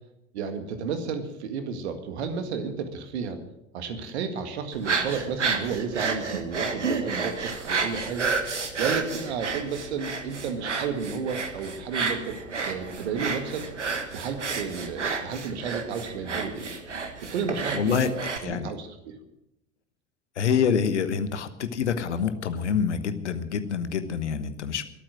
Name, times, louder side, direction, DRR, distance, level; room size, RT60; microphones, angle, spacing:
voice 1, 0.3-3.4 3.7-8.3 8.8-12.4 12.6-13.7 14.1-16.7 17.2-19.2, right 5 dB, 65° right, 8 dB, 2.0 m, -32 dB
sound 1, 4.7-18.4, right 4 dB, 80° right, 1.5 m, -31 dB
voice 2, 17.7-18.1 18.4-18.7 20.4-24.8, left 7 dB, 75° left, 12 dB, 1.2 m, -26 dB
22.0 x 9.0 x 6.2 m, 0.85 s
figure-of-eight pair, 70°, 35 cm